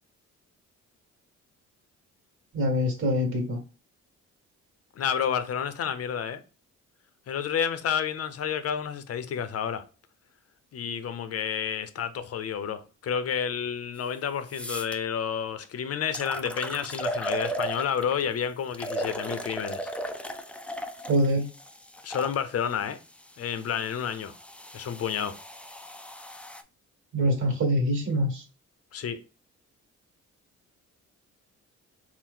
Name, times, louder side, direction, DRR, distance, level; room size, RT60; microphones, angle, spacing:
voice 1, 2.5-3.6 21.0-21.5 27.1-28.4, equal, 45° right, 1.5 m, -24 dB
voice 2, 5.0-6.4 7.3-9.8 10.7-19.9 22.0-23.0 23.4-24.3 24.7-25.4 28.9-29.2, left 8 dB, 50° left, 0.6 m, -30 dB
sound 1, 14.0-14.1 14.5-15.0 15.6-15.7 16.1-18.2 18.7-22.4 23.2-26.6, equal, 5° left, 0.4 m, -36 dB
4.4 x 2.1 x 3.6 m
cardioid pair, 90°, 30 cm